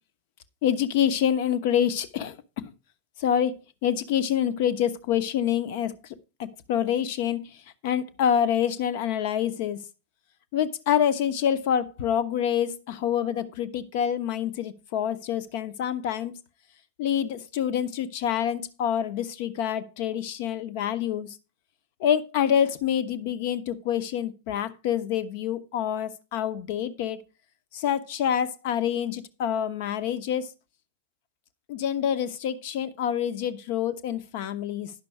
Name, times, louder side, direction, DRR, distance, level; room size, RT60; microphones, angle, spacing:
voice 1, 0.6-2.7 3.2-5.9 6.4-7.6 7.8-9.8 10.5-16.3 17.0-21.4 22.0-27.2 27.7-30.5 31.7-34.9, left 9 dB, 50° left, 0.8 m, -27 dB
10.5 x 6.0 x 4.5 m
figure-of-eight pair, 90°, 0 cm